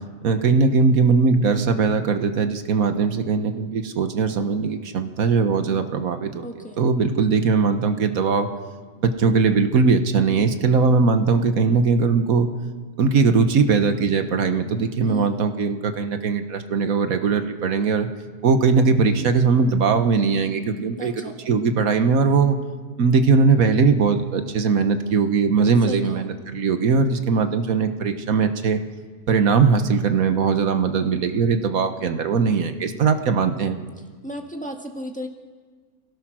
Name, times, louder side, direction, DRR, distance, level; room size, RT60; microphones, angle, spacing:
voice 1, 0.2-6.5 6.8-8.5 9.0-12.5 13.0-18.1 18.4-21.1 21.5-22.6 23.0-28.8 29.3-33.8, right 4 dB, 75° right, 8 dB, 1.6 m, -20 dB
voice 2, 6.4-6.8 15.1-15.3 21.0-21.4 25.8-26.3 34.2-35.3, equal, 5° left, 2 dB, 1.8 m, -34 dB
28.0 x 16.5 x 6.2 m, 1.5 s
omnidirectional pair, 1.5 m